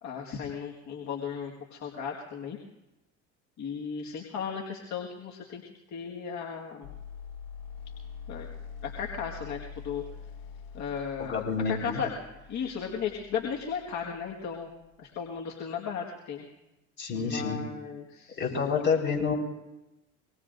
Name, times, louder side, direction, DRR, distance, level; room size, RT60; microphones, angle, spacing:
voice 1, 0.0-2.6 3.6-5.6 5.9-6.9 8.3-8.5 8.8-10.0 10.7-11.4 11.6-12.1 12.5-14.7 15.0-16.5 17.1-18.5 19.0-19.1, left 7 dB, 55° left, -1 dB, 1.8 m, -35 dB
sound 1, 6.8-14.9, left 6 dB, 85° left, 1.7 m, -45 dB
voice 2, 11.2-12.0 17.0-17.6 18.4-19.3, left 5 dB, 35° left, -1 dB, 4.5 m, -28 dB
24.5 x 19.0 x 2.6 m, 0.98 s
supercardioid pair, 85°, 33 cm